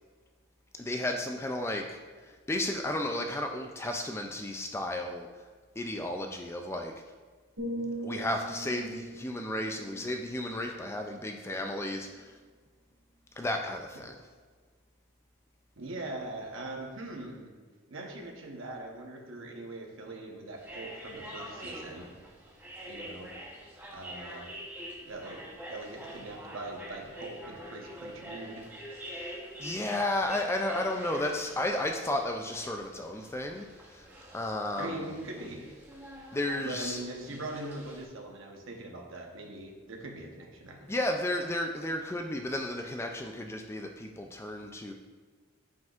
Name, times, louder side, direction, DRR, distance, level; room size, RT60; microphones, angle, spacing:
voice 1, 0.7-5.3 5.8-6.9 8.0-12.4 13.4-14.2 29.1-34.1 34.3-35.2 36.3-37.0 40.9-44.9, left 1 dB, 10° left, 3 dB, 0.3 m, -33 dB
sound 1, 7.6-11.5 12.0-12.2, right 1 dB, 90° right, 2.0 m, -41 dB
voice 2, 15.8-17.5 17.9-22.1 22.9-23.3 23.9-24.5 25.0-25.4 25.7-28.7 34.8-35.6 36.6-40.9, right 2 dB, 65° right, 1 dB, 1.0 m, -41 dB
sound 2, 20.6-38.0, equal, 10° right, 0.9 m, -46 dB
9.1 x 5.2 x 2.5 m, 1.5 s
head